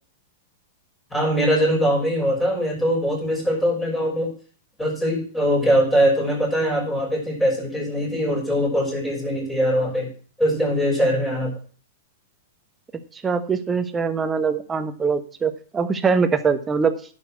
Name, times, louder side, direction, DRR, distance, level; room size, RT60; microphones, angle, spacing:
voice 1, 1.1-4.3 4.8-10.1 10.4-11.5, equal, 10° left, -2 dB, 6.1 m, -22 dB
voice 2, 13.2-16.9, right 5 dB, 15° right, 9 dB, 1.2 m, -22 dB
10.5 x 6.5 x 5.9 m, 0.42 s
hypercardioid pair, 110°, 0 cm